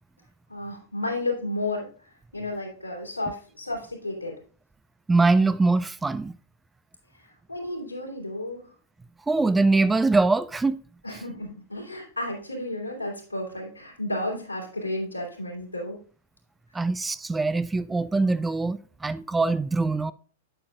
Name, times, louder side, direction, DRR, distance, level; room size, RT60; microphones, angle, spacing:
voice 1, 0.5-1.9 2.3-4.3 7.5-8.6 11.0-16.0, left 1 dB, 85° left, 3.2 m, -32 dB
voice 2, 5.1-6.3 9.3-10.8 16.7-20.1, right 3 dB, 10° right, 0.3 m, -23 dB
8.7 x 8.6 x 2.5 m
figure-of-eight pair, 100°, 0 cm